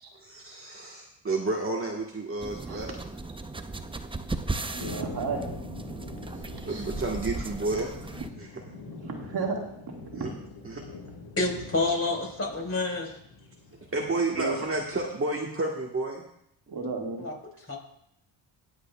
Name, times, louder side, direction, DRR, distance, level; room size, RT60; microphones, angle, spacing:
voice 1, 0.2-2.9 6.6-7.9 8.4-8.6 10.1-10.3 10.6-10.8 13.9-16.2, right 2 dB, 30° right, -1 dB, 1.4 m, -31 dB
sound 1, 2.4-8.3, right 2 dB, 10° right, 0.6 m, -36 dB
voice 2, 4.7-5.4 6.7-6.8 9.0-9.6 10.1-10.3 14.4-14.6 16.7-17.3, right 4 dB, 50° right, 0 dB, 2.0 m, -32 dB
sound 2, 4.8-15.0, left 3 dB, 85° left, 1.7 m, -44 dB
voice 3, 11.4-13.1 17.2-17.8, left 3 dB, 30° left, 0 dB, 4.5 m, -29 dB
19.0 x 8.0 x 2.3 m, 0.74 s
cardioid pair, 70°, 47 cm